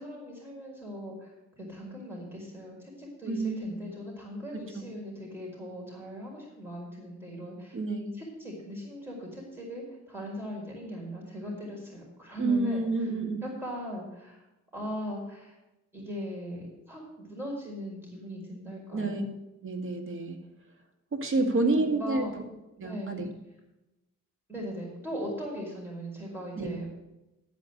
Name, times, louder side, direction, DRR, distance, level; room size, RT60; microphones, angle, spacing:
voice 1, 0.0-7.8 8.1-13.1 13.4-14.4 14.7-15.6 15.9-19.2 21.3-21.5 22.0-22.3 22.8-23.2 24.5-26.9, equal, 5° right, -3 dB, 4.7 m, -39 dB
voice 2, 3.3-3.7 4.5-4.8 7.7-8.1 12.4-13.4 18.9-19.2 19.6-20.4 21.1-22.3 22.8-23.3 26.6-26.7, right 3 dB, 45° right, 4 dB, 2.0 m, -29 dB
12.5 x 5.2 x 7.8 m, 0.96 s
cardioid pair, 90°, 30 cm